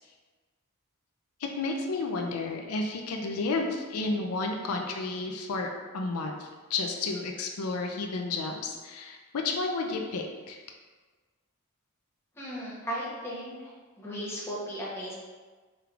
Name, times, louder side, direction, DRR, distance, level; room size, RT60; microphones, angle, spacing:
voice 1, 1.4-10.6, left 3 dB, 85° left, 2 dB, 0.5 m, -32 dB
voice 2, 12.4-13.7 14.0-15.1, equal, 10° left, -7 dB, 0.9 m, -36 dB
4.9 x 3.2 x 2.4 m, 1.4 s
head